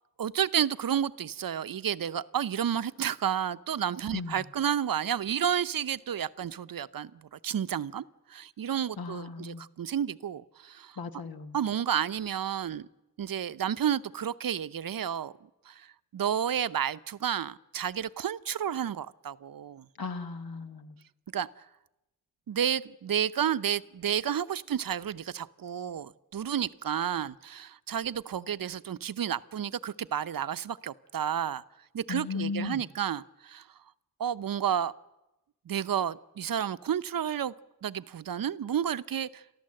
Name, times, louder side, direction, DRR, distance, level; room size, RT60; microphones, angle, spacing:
voice 1, 0.2-8.0 8.3-11.0 11.5-12.9 13.2-15.3 15.7-15.9 16.1-19.9 21.3-21.5 22.5-31.6 31.9-33.7 34.2-34.9 35.7-37.5 37.8-39.4, right 9 dB, 70° right, 14 dB, 0.7 m, -31 dB
voice 2, 9.0-9.6 11.0-11.6 20.0-20.9 32.1-32.8, left 4 dB, 80° left, 8 dB, 1.4 m, -36 dB
30.0 x 13.5 x 7.7 m, 0.96 s
wide cardioid pair, 80°, 35 cm